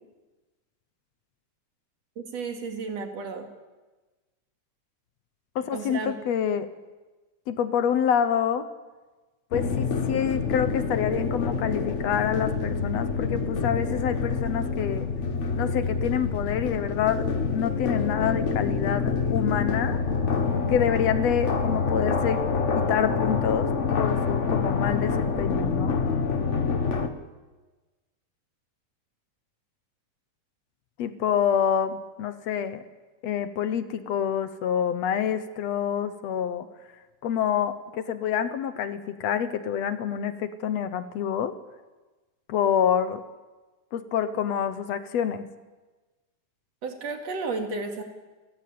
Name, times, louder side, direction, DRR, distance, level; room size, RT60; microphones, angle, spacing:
voice 1, 2.2-3.5 5.7-6.2 46.8-48.0, right 4 dB, 60° right, 4 dB, 3.3 m, -33 dB
voice 2, 5.6-6.7 7.5-8.7 9.5-15.1 15.6-20.0 20.7-22.4 22.8-26.0 31.0-32.8 33.2-36.7 37.2-41.5 42.5-43.2 43.9-45.5, left 8 dB, 70° left, 11 dB, 2.0 m, -27 dB
sound 1, 9.5-27.1, left 5 dB, 50° left, 0.8 m, -27 dB
29.5 x 14.5 x 8.6 m, 1.2 s
omnidirectional pair, 3.3 m